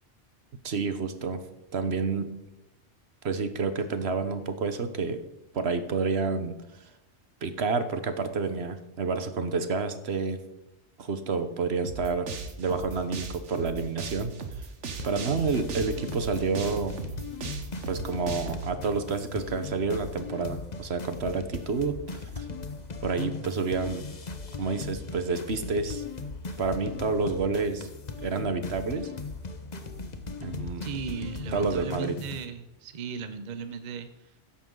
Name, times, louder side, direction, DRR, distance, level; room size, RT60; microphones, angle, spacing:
voice 1, 0.6-1.4 1.7-2.3 3.2-5.2 5.5-6.6 7.4-10.4 11.0-14.3 15.0-16.9 17.9-22.5 23.0-24.1 24.6-26.0 26.6-27.9 28.2-29.1 30.4-30.9 31.5-32.2, right 4 dB, 65° right, 10 dB, 1.3 m, -29 dB
sound 1, 11.8-18.7, right 5 dB, 85° right, 1.5 m, -37 dB
sound 2, 15.0-32.5, left 4 dB, 40° left, 1.1 m, -38 dB
voice 2, 30.8-34.3, right 6 dB, 45° right, 10 dB, 0.8 m, -37 dB
14.0 x 10.5 x 3.9 m, 0.91 s
omnidirectional pair, 1.2 m